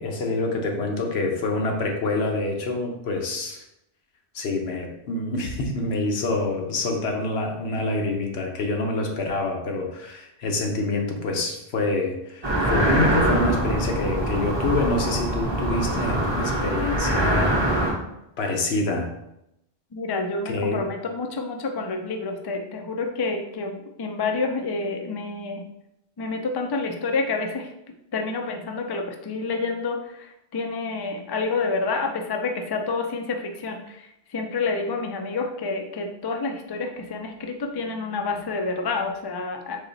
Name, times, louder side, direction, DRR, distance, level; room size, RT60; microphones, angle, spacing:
voice 1, 0.0-3.6 4.3-17.6 18.4-19.1 20.4-20.8, left 2 dB, 75° left, 2 dB, 1.1 m, -26 dB
sound 1, 12.4-17.9, right 1 dB, 25° right, 0.8 m, -23 dB
voice 2, 19.9-25.6 26.2-27.7 28.1-39.8, left 3 dB, 45° left, 3 dB, 0.3 m, -28 dB
4.1 x 2.9 x 4.0 m, 0.84 s
omnidirectional pair, 1.1 m